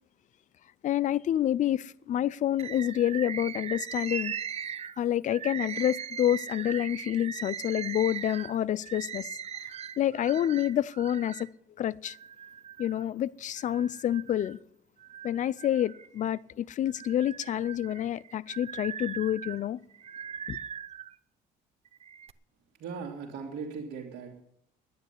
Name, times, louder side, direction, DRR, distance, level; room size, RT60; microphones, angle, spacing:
voice 1, 0.8-4.3 5.0-9.3 10.0-11.5 11.8-12.2 12.8-14.6 15.2-19.8 20.5-20.6, left 11 dB, 45° left, 0.5 m, -28 dB
Bird, 2.6-11.5 12.0-13.0 13.6-14.6 15.0-16.4 16.9-21.1 21.8-22.3, right 8 dB, 40° right, 0.7 m, -40 dB
voice 2, 22.8-24.4, right 5 dB, 70° right, 2.5 m, -38 dB
11.0 x 9.6 x 9.6 m
cardioid pair, 110°, 17 cm